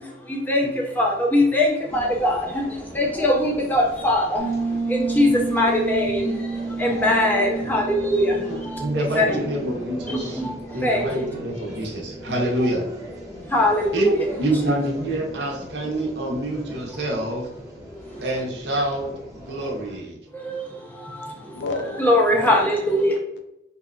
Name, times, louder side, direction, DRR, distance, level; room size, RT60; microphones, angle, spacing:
voice 1, 0.0-9.4 10.1-11.3 12.6-12.7 13.5-14.3 18.1-18.3 19.6-19.7 20.3-21.6 22.0-23.2, left 1 dB, 10° left, -1 dB, 0.5 m, -22 dB
sound 1, 1.9-20.0, equal, 20° right, 0.8 m, -40 dB
Piano, 4.4-12.9, right 3 dB, 90° right, 1.0 m, -31 dB
voice 2, 8.5-10.4 10.7-12.8 13.9-14.1 14.4-17.5 18.2-20.2, right 1 dB, 65° right, -1 dB, 0.6 m, -27 dB
voice 3, 21.3-23.4, left 2 dB, 65° left, 4 dB, 0.4 m, -33 dB
2.7 x 2.1 x 2.4 m, 0.85 s
head